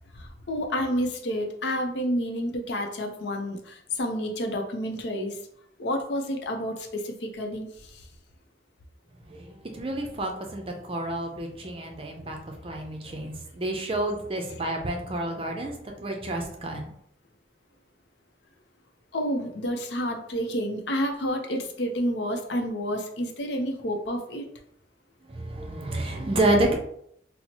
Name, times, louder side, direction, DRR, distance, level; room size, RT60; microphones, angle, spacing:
voice 1, 0.2-5.4 5.8-7.7 7.9-8.0 19.1-24.5, equal, 85° left, 4 dB, 0.6 m, -29 dB
voice 2, 9.3-16.9 25.3-26.8, right 1 dB, 30° right, 2 dB, 0.5 m, -29 dB
4.3 x 2.0 x 2.8 m, 0.70 s
head